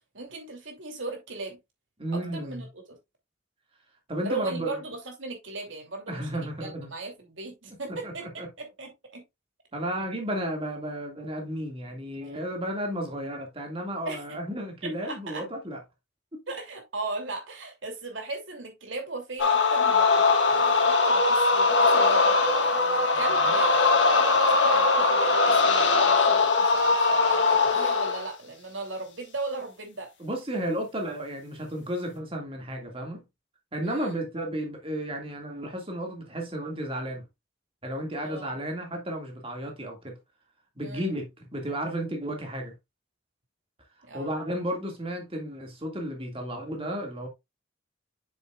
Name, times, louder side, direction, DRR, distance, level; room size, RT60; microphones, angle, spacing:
voice 1, 0.1-1.6 2.1-3.0 4.2-9.2 14.0-14.2 14.8-15.4 16.5-30.1 33.8-34.2 38.2-38.5 40.8-41.1 44.0-44.4, right 3 dB, 75° right, 2.9 m, -38 dB
voice 2, 2.0-2.6 4.1-4.8 6.1-6.9 7.9-8.5 9.7-15.8 16.3-16.4 23.4-23.5 30.2-33.2 33.7-37.2 37.8-40.2 40.8-42.8 44.1-47.3, right 1 dB, 30° right, 2.1 m, -33 dB
sound 1, 19.4-28.3, left 3 dB, 65° left, 1.6 m, -21 dB
7.5 x 7.0 x 2.4 m
head